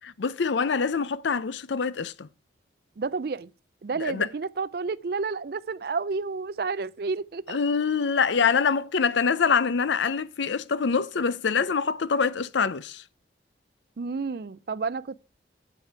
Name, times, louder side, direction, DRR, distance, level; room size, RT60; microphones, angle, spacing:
voice 1, 0.0-2.3 4.0-4.3 7.5-13.0, left 5 dB, 80° left, 0.5 m, -25 dB
voice 2, 3.0-3.5 3.8-7.6 14.0-15.2, right 4 dB, 55° right, 0.4 m, -30 dB
8.3 x 8.2 x 4.6 m
head